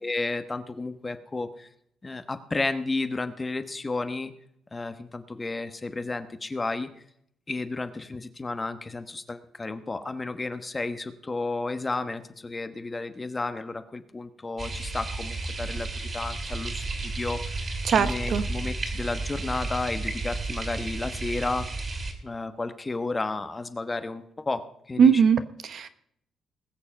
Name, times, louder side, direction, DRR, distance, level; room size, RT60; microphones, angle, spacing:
voice 1, 0.0-1.7 2.0-4.3 4.7-6.9 7.5-21.7 22.2-25.2, left 3 dB, 25° left, 10 dB, 1.1 m, -32 dB
sound 1, 14.6-22.1, right 3 dB, 35° right, 3.0 m, -32 dB
voice 2, 17.8-18.4 25.0-25.9, right 6 dB, 60° right, 10 dB, 1.0 m, -20 dB
20.5 x 6.9 x 5.3 m, 0.71 s
cardioid pair, 90°, 0 cm